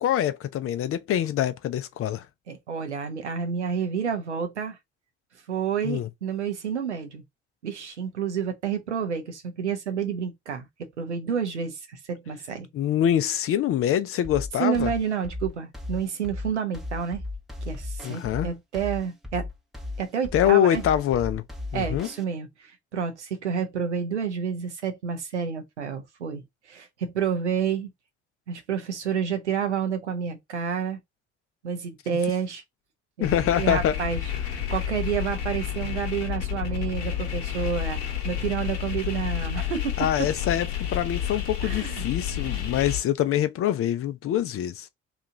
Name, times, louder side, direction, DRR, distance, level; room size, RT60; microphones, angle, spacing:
voice 1, 0.0-2.2 5.8-6.1 12.7-14.9 18.0-18.5 20.3-21.4 21.7-22.1 33.2-34.0 40.0-44.9, left 11 dB, 40° left, 0.5 m, -25 dB
voice 2, 2.5-4.8 5.5-7.2 7.6-12.7 14.6-17.2 17.6-19.5 20.0-20.8 21.7-26.4 26.7-27.9 28.5-31.0 31.6-32.6 33.2-34.2 34.5-39.9 41.6-42.0 42.3-42.6, right 7 dB, 90° right, 0.6 m, -29 dB
sound 1, 14.2-22.2, left 2 dB, ahead, 0.7 m, -36 dB
sound 2, 33.2-43.0, left 9 dB, 70° left, 0.9 m, -30 dB
2.9 x 2.4 x 3.6 m
figure-of-eight pair, 50°, 34 cm